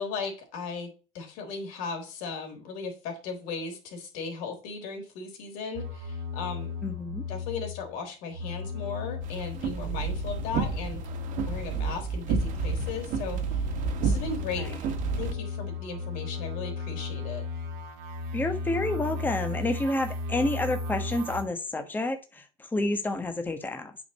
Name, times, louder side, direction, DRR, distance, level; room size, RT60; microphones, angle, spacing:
voice 1, 0.0-6.7 7.3-11.0 11.5-13.7 14.0-14.7 15.2-17.5, left 5 dB, 75° left, 3 dB, 3.7 m, -37 dB
sound 1, 5.7-8.0 8.3-11.8 12.1-21.4, left 4 dB, 85° right, 2.0 m, -36 dB
voice 2, 6.8-7.2 14.6-14.8 18.3-24.0, left 2 dB, 15° left, 6 dB, 1.2 m, -29 dB
sound 2, 9.2-15.3, right 5 dB, 65° right, 1.5 m, -31 dB
8.5 x 5.3 x 4.3 m, 0.34 s
supercardioid pair, 105°, 15 cm